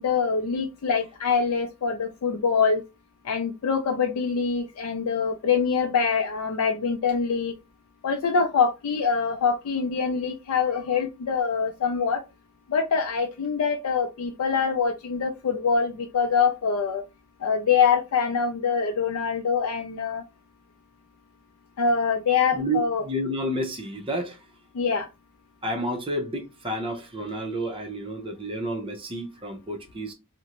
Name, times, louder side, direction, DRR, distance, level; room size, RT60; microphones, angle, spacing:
voice 1, 0.0-2.8 3.2-7.5 8.0-12.2 12.7-17.0 17.4-20.2 21.8-23.0 24.7-25.1, left 5 dB, 75° left, 0.4 m, -24 dB
voice 2, 22.5-24.4 25.6-30.1, right 1 dB, 25° right, 0.6 m, -30 dB
2.5 x 2.1 x 2.9 m
head